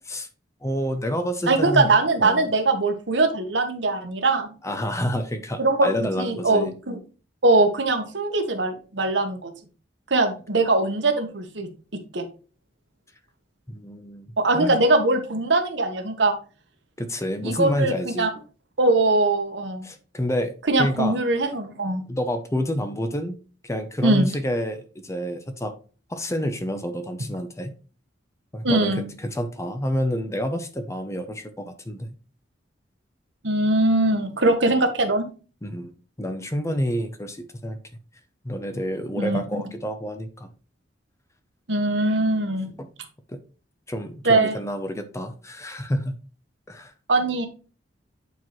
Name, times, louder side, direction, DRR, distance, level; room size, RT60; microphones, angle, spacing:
voice 1, 0.6-1.9 2.2-2.5 4.6-6.7 13.7-14.3 14.5-14.8 17.0-18.3 19.8-20.5 20.8-21.2 22.1-23.4 23.6-25.7 26.1-27.7 28.5-32.1 35.6-35.9 36.2-37.8 38.4-40.5 43.3-43.4 43.9-46.2 46.7-46.9, equal, 15° left, 8 dB, 0.7 m, -28 dB
voice 2, 1.5-4.5 5.6-7.0 7.4-9.5 10.1-11.7 12.1-12.3 14.4-16.4 17.4-18.3 18.8-19.9 20.7-22.0 24.0-24.3 28.6-29.0 33.4-35.2 39.2-39.7 41.7-42.7 44.2-44.6 47.1-47.5, right 2 dB, 70° right, 6 dB, 1.2 m, -21 dB
8.2 x 4.5 x 3.1 m, 0.36 s
head